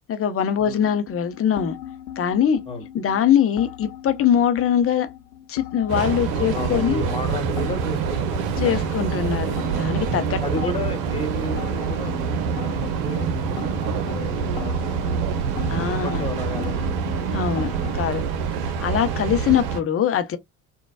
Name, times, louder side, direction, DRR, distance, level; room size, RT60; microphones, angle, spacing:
voice 1, 0.1-1.7 2.2-2.6 2.9-5.1 5.5-7.0 8.6-10.4 15.7-16.2 17.3-17.7 17.9-18.2 18.8-20.4, left 9 dB, 30° left, 0.7 m, -22 dB
sound 1, 0.6-18.0, left 11 dB, 70° left, 0.5 m, -38 dB
Train, 5.9-19.8, right 6 dB, 60° right, 0.7 m, -26 dB
voice 2, 6.3-8.6 8.9-9.0 9.9-10.1 10.4-12.4 12.6-15.5 16.0-16.9 18.5-18.7, left 1 dB, 10° left, 1.4 m, -33 dB
3.9 x 2.2 x 2.2 m
figure-of-eight pair, 55°, 47 cm